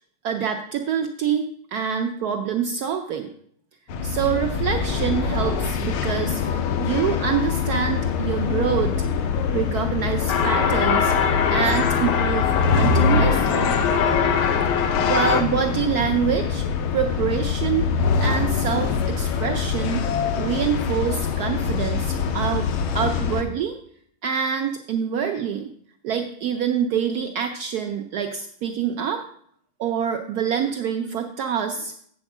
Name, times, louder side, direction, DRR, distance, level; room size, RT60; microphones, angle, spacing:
voice 1, 0.2-3.3 4.0-6.4 6.8-9.1 9.5-11.1 11.5-13.8 14.8-16.6 16.9-17.9 18.2-20.0 20.4-22.7 22.9-23.8 24.2-25.7 26.0-29.2 29.8-31.9, right 7 dB, 85° right, 5 dB, 0.8 m, -26 dB
sound 1, 3.9-23.4, left 6 dB, 85° left, 1.6 m, -24 dB
sound 2, 10.3-15.4, left 7 dB, 65° left, 1.2 m, -22 dB
8.0 x 4.3 x 7.1 m, 0.66 s
omnidirectional pair, 2.3 m